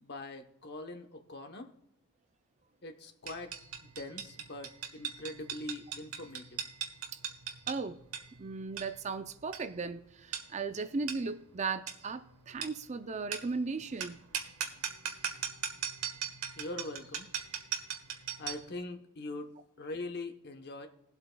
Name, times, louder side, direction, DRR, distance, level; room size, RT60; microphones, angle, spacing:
voice 1, 0.0-1.7 2.8-3.5 3.8-6.6 16.6-17.3 18.4-20.9, left 2 dB, 50° left, 7 dB, 0.9 m, -42 dB
sound 1, 3.3-18.7, right 8 dB, 75° right, 1.2 m, -40 dB
voice 2, 7.7-8.0 8.4-14.2, right 4 dB, 30° right, 11 dB, 0.4 m, -36 dB
21.5 x 8.0 x 2.3 m, 0.87 s
head